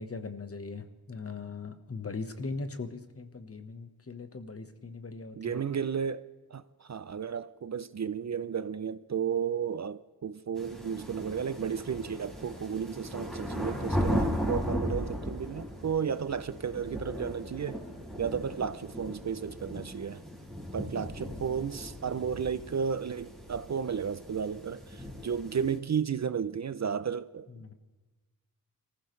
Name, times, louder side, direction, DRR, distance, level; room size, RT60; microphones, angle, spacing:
voice 1, 0.0-5.6 21.3-21.5 27.5-27.7, left 4 dB, 40° left, 1.2 m, -40 dB
voice 2, 5.4-17.8 18.2-20.2 20.7-27.5, right 7 dB, 50° right, 0.5 m, -33 dB
sound 1, 10.6-25.8, equal, ahead, 4.2 m, -37 dB
25.0 x 15.0 x 3.2 m
wide cardioid pair, 120°, 37 cm